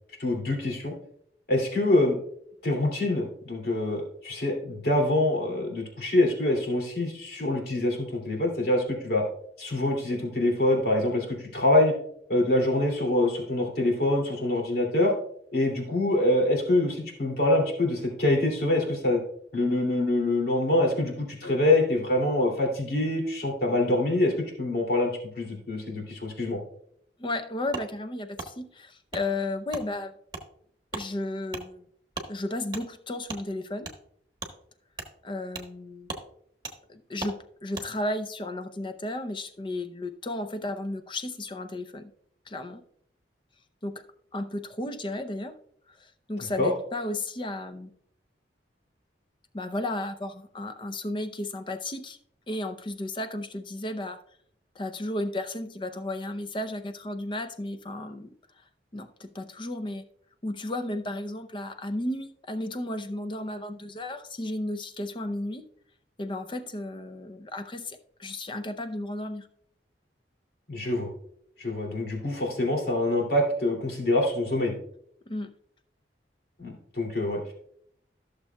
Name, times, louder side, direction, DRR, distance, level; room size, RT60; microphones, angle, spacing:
voice 1, 0.2-0.9 1.5-2.2 2.6-9.2 9.6-11.9 12.3-15.1 15.5-19.2 19.5-26.6 46.6-46.7 70.7-71.1 71.6-74.7 76.6-77.5, left 1 dB, 55° left, 0 dB, 2.6 m, -25 dB
voice 2, 27.2-30.1 30.9-31.8 32.3-33.9 35.2-36.1 36.9-37.3 37.6-42.1 42.5-42.8 43.8-44.0 44.3-45.5 46.0-47.9 49.5-52.2 52.5-54.2 54.8-58.3 58.9-60.0 60.4-65.6 66.2-69.5 75.3-75.5, left 1 dB, 25° left, 9 dB, 0.6 m, -33 dB
Wood, 27.7-27.9 28.4-28.5 29.1-29.2 29.7-29.8 30.3-30.4 30.9-31.1 31.5-31.6 32.1-32.3 32.7-32.8 33.3-33.4 33.8-34.0 34.4-34.5 34.9-35.1 35.5-35.7 36.0-36.2 36.6-36.8 37.2-37.4 37.7-37.9, right 3 dB, 25° right, 1.3 m, -37 dB
14.5 x 6.7 x 2.3 m, 0.68 s
head